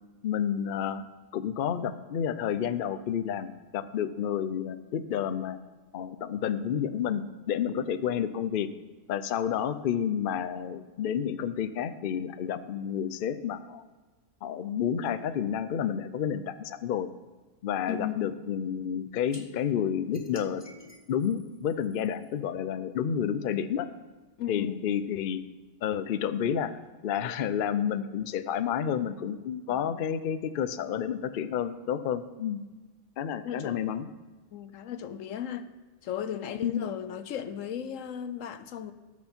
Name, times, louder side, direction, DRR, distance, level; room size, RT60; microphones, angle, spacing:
voice 1, 0.2-1.1 1.3-5.6 5.9-8.7 9.1-13.8 14.4-17.1 17.6-20.6 21.1-23.9 24.5-25.4 25.8-32.6 33.2-34.1 36.6-36.9, left 8 dB, 60° left, 0.6 m, -30 dB
voice 2, 17.9-18.3 24.4-24.8 29.7-30.0 33.4-33.8 34.5-35.7 36.0-38.9, left 9 dB, 80° left, 1.1 m, -36 dB
sound 1, 19.3-19.4 20.1-22.3, left 2 dB, 20° left, 0.9 m, -47 dB
18.5 x 6.3 x 4.4 m
omnidirectional pair, 1.4 m